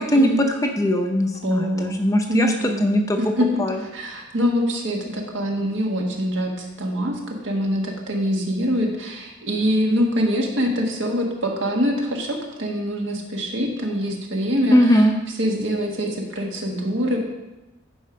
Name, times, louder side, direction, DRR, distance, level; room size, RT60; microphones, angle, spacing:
voice 1, 0.1-0.4 1.4-2.0 2.3-2.8 3.2-15.1 15.4-17.2, equal, 65° right, 0 dB, 1.5 m, -24 dB
voice 2, 0.8-2.5 2.8-3.2 3.6-3.8 14.7-15.1, equal, 15° left, 4 dB, 0.6 m, -19 dB
11.0 x 4.6 x 5.1 m, 1.0 s
head